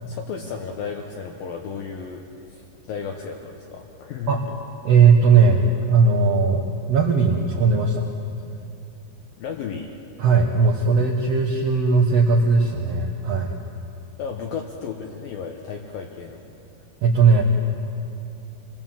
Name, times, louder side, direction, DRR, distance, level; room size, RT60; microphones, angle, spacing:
voice 1, 0.1-4.4 9.4-9.9 14.2-16.4, left 6 dB, 70° left, 2 dB, 2.7 m, -34 dB
voice 2, 4.8-5.6 5.9-8.0 10.2-13.5 17.0-17.4, right 5 dB, 60° right, 0 dB, 1.7 m, -18 dB
28.5 x 21.0 x 7.4 m, 2.7 s
omnidirectional pair, 4.7 m